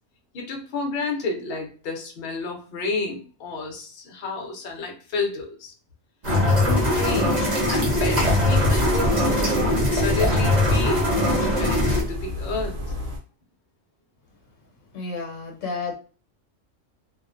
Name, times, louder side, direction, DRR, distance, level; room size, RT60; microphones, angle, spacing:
voice 1, 0.3-5.7 6.6-9.2 9.9-12.8, left 3 dB, 60° left, 2 dB, 0.8 m, -31 dB
sound 1, 6.2-12.0, left 1 dB, 40° right, 0.8 m, -21 dB
sound 2, 7.6-13.2, equal, 70° right, 1.0 m, -31 dB
voice 2, 14.9-16.0, left 4 dB, 90° left, 2 dB, 1.1 m, -31 dB
2.4 x 2.1 x 2.4 m, 0.37 s
omnidirectional pair, 1.3 m